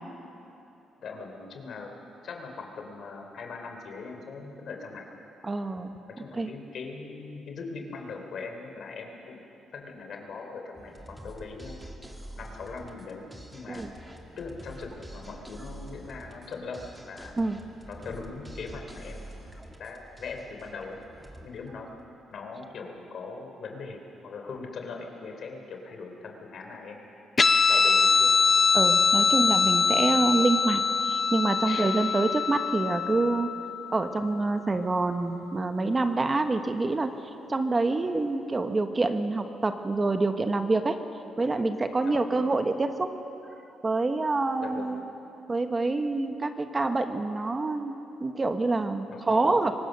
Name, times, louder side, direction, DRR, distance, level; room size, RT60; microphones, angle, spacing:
voice 1, 1.0-1.9 2.2-5.0 6.2-9.4 9.7-11.8 12.4-13.8 14.4-17.3 17.9-19.5 19.8-21.0 21.4-21.9 22.3-27.1 27.7-28.3 31.6-31.9 42.0-42.4 44.6-45.0 49.1-49.6, left 4 dB, 60° left, 3 dB, 3.3 m, -40 dB
voice 2, 5.4-5.9 6.3-6.5 13.7-13.9 17.4-17.6 28.7-33.5 33.9-37.1 37.5-41.0 41.4-43.1 43.8-45.0 45.5-49.7, right 3 dB, 25° right, 7 dB, 1.1 m, -26 dB
sound 1, 10.8-22.4, right 1 dB, 10° right, 2.3 m, -46 dB
Guitar, 27.4-34.3, left 5 dB, 35° left, 0.7 m, -23 dB
23.5 x 18.5 x 6.6 m, 2.9 s
cardioid pair, 90°, 0 cm